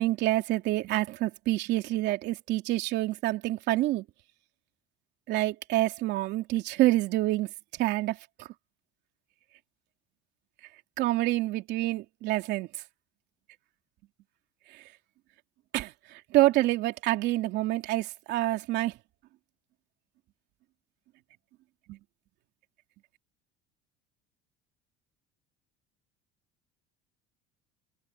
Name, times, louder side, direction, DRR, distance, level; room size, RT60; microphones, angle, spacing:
voice 1, 0.0-4.0 5.3-7.5 7.8-8.5 11.0-12.7 15.7-18.9 21.9-22.0, right 17 dB, 65° right, 3.0 m, -27 dB
cardioid pair, 135°, 20 cm